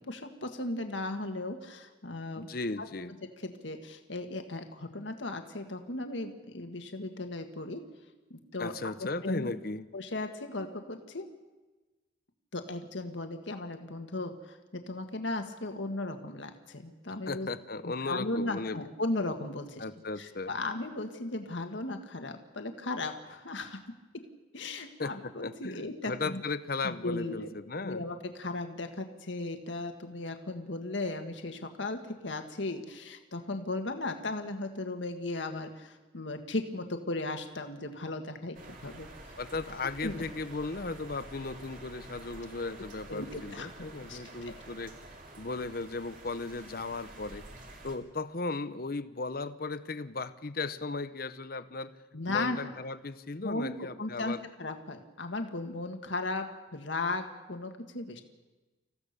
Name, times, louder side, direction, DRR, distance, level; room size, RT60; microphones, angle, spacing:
voice 1, 0.1-2.5 2.8-2.9 3.4-7.8 8.3-8.7 9.0-9.5 9.9-11.3 12.5-17.5 17.8-19.8 20.2-23.8 24.1-24.2 24.5-26.4 26.8-27.5 27.8-38.6 38.8-39.1 40.0-40.2 43.1-44.5 52.1-52.7 53.4-58.2, left 2 dB, 70° left, 6 dB, 1.8 m, -36 dB
voice 2, 2.4-3.1 8.6-9.9 17.3-18.8 19.8-20.5 25.0-28.0 39.4-44.9 45.4-47.4 47.8-51.9 52.3-54.4, left 3 dB, 50° left, 13 dB, 0.8 m, -36 dB
sound 1, 38.5-48.0, right 2 dB, 45° right, 2.8 m, -49 dB
26.5 x 15.5 x 6.7 m, 1.2 s
head